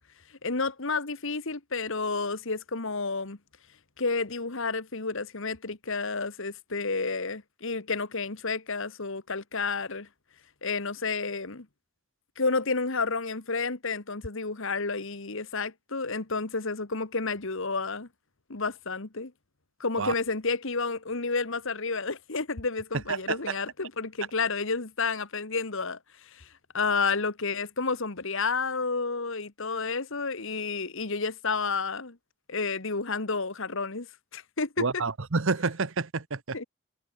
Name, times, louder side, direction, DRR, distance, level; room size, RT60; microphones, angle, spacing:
voice 1, 0.4-3.4 4.0-10.1 10.6-11.7 12.4-18.1 18.5-19.3 19.8-26.5 26.7-32.2 32.5-35.0 36.5-36.6, left 4 dB, 60° left, 1.6 m, -30 dB
voice 2, 23.1-23.5 34.8-36.6, right 4 dB, 60° right, 1.0 m, -29 dB
head